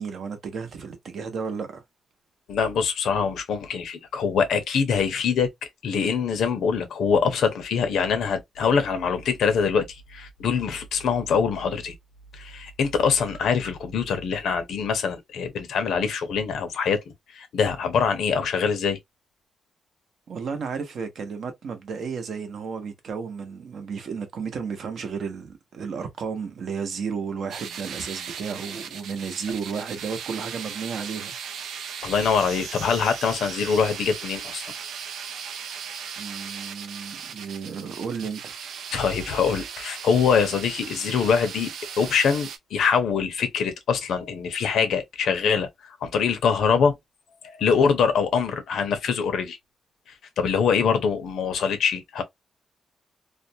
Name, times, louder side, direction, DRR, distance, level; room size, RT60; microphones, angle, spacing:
voice 1, 0.0-1.8 20.3-31.3 36.2-38.5, right 5 dB, 60° right, 0.7 m, -33 dB
voice 2, 2.5-5.5 5.8-9.9 10.1-11.9 12.3-17.0 17.3-19.0 32.0-34.7 38.9-41.7 42.0-47.0 47.6-49.6 50.4-52.2, left 6 dB, 80° left, 0.7 m, -24 dB
sound 1, 27.5-42.6, right 7 dB, 90° right, 0.4 m, -37 dB
2.4 x 2.1 x 2.7 m
wide cardioid pair, 145°, 0 cm